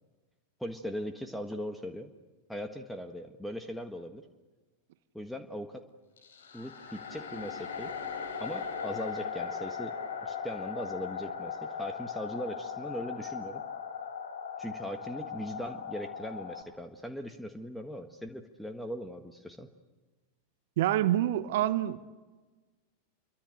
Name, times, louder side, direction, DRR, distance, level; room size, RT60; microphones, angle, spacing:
voice 1, 0.6-2.1 2.5-4.2 5.1-5.9 6.5-7.9 8.4-10.0 10.2-13.6 14.6-19.7, equal, ahead, 1.5 m, -39 dB
sound 1, 6.2-16.6, left 6 dB, 65° left, 4.4 m, -38 dB
voice 2, 20.8-22.0, right 13 dB, 55° right, 1.0 m, -26 dB
29.0 x 24.0 x 8.3 m
figure-of-eight pair, 90°, 0 cm